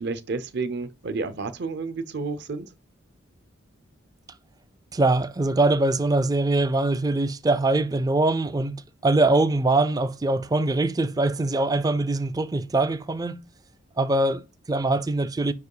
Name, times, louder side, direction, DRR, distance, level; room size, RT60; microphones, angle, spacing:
voice 1, 0.0-2.7, right 3 dB, 55° right, 0.7 m, -30 dB
voice 2, 4.9-13.4 14.0-15.5, right 2 dB, 20° right, 0.4 m, -23 dB
5.2 x 4.7 x 4.8 m
head